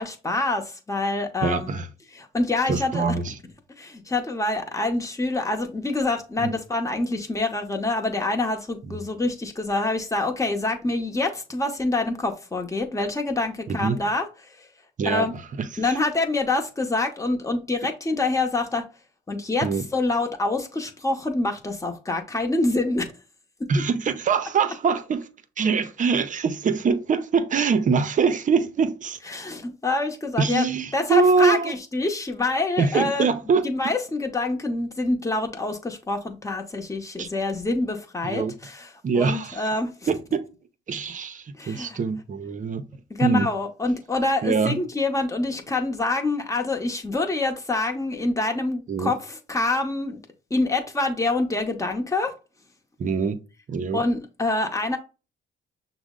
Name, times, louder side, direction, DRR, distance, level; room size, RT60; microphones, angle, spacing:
voice 1, 0.0-1.7 2.1-3.0 3.8-14.7 15.0-15.3 15.8-18.8 19.3-23.1 23.6-23.7 29.3-30.6 30.9-33.3 33.6-38.9 39.1-39.9 41.6-42.0 43.2-50.2 50.5-52.3 53.9-55.0, left 2 dB, 15° left, 0.9 m, -26 dB
voice 2, 1.4-1.9 2.7-3.3 6.4-6.5 8.8-9.0 13.7-14.0 15.0-16.0 19.6-19.8 23.7-25.3 25.6-29.2 30.4-31.7 32.8-33.7 37.2-37.3 38.2-38.5 39.0-39.7 40.1-40.5 40.9-42.8 43.2-43.5 44.4-44.8 48.9-49.1 53.0-53.4 53.7-54.0, right 5 dB, 40° right, 0.6 m, -23 dB
6.1 x 2.1 x 3.7 m
cardioid pair, 90°, 20 cm